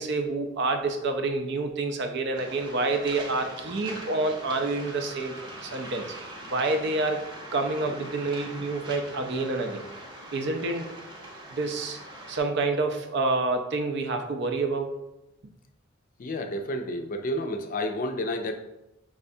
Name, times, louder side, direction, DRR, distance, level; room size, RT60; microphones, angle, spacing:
voice 1, 0.0-5.3 5.6-6.1 6.4-7.2 7.5-9.8 10.3-10.9 11.5-12.0 12.3-15.0, right 3 dB, 65° right, 6 dB, 0.5 m, -28 dB
Waves surf, 2.3-12.4, right 1 dB, 20° right, 0.9 m, -42 dB
voice 2, 16.2-18.5, left 1 dB, 45° left, 5 dB, 0.4 m, -30 dB
4.9 x 3.3 x 2.7 m, 0.90 s
head